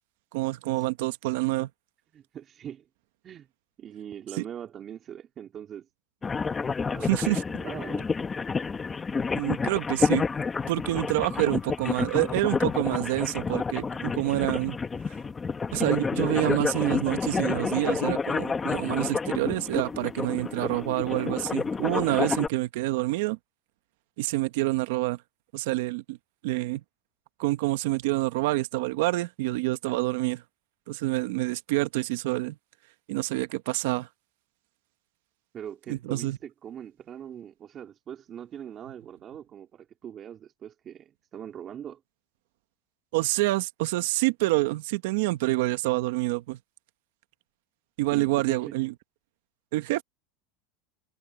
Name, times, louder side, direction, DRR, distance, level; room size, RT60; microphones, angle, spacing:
voice 1, 0.3-1.7 4.4-4.5 7.0-7.4 9.3-10.2 10.7-14.8 15.7-23.4 24.2-25.2 25.5-26.2 26.4-26.8 27.4-30.4 30.9-32.5 33.1-34.1 35.9-36.4 43.1-46.6 48.0-48.9 49.7-50.0, right 19 dB, 75° right, 1.3 m, -27 dB
voice 2, 2.1-2.9 3.2-3.5 3.8-5.9 6.8-8.1 35.5-42.0 48.1-48.7, right 9 dB, 30° right, 4.1 m, -42 dB
sound 1, 6.2-22.5, left 4 dB, 15° left, 1.3 m, -29 dB
supercardioid pair, 145°, 0 cm